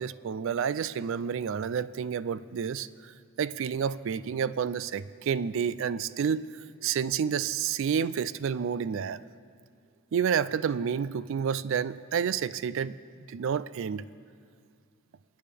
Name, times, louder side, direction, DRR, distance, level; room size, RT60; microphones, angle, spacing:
voice 1, 0.0-2.9 3.4-6.4 6.8-9.2 10.1-12.9 13.3-14.0, right 7 dB, 65° right, 17 dB, 0.3 m, -29 dB
27.5 x 9.3 x 3.5 m, 2.2 s
head